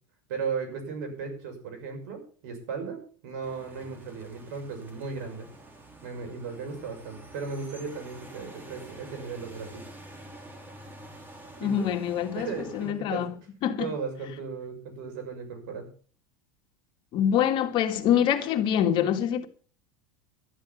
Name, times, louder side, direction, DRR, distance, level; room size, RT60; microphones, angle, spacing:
voice 1, 0.3-5.5 6.0-9.8 11.6-11.9 12.3-13.3 13.8-15.9, right 5 dB, 75° right, 6.2 m, -36 dB
sound 1, 3.4-12.9, right 1 dB, 20° right, 4.3 m, -48 dB
voice 2, 11.6-12.5 12.7-13.3 13.6-13.9 17.1-19.5, left 9 dB, 50° left, 2.1 m, -25 dB
12.5 x 10.5 x 7.2 m
supercardioid pair, 105°, 10 cm